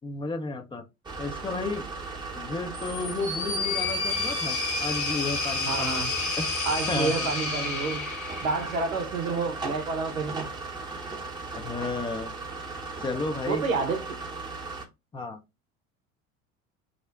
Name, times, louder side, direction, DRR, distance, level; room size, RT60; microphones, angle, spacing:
voice 1, 0.0-0.9 1.2-1.9 2.4-6.1 6.4-6.5 6.9-7.3 11.5-12.3 13.0-13.6 15.1-15.4, left 3 dB, 10° left, 0.5 m, -32 dB
sound 1, 1.0-14.8, right 3 dB, 10° right, 0.8 m, -37 dB
sound 2, 2.7-9.0, left 3 dB, 50° left, 1.1 m, -30 dB
voice 2, 5.6-6.1 6.6-8.1 8.4-10.5 13.5-14.1, right 4 dB, 85° right, 0.6 m, -29 dB
2.5 x 2.0 x 3.2 m
figure-of-eight pair, 65°, 40 cm